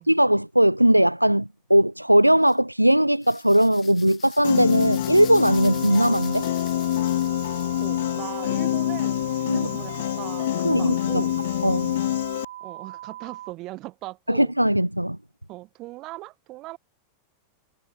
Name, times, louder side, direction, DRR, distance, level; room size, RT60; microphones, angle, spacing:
voice 1, 0.0-6.5 9.5-9.6 10.6-11.2 11.6-11.9 14.3-15.2, right 1 dB, 90° right, 0.4 m, -19 dB
sound 1, 2.4-2.6 3.2-7.9, left 10 dB, 25° left, 6.5 m, -46 dB
Piano, 4.4-12.5, left 13 dB, 55° left, 0.8 m, -26 dB
sound 2, 5.5-13.5, right 13 dB, 60° right, 2.3 m, -40 dB
voice 2, 7.8-11.4 12.6-14.5 15.5-16.8, right 19 dB, 40° right, 5.9 m, -39 dB
figure-of-eight pair, 90°, 0 cm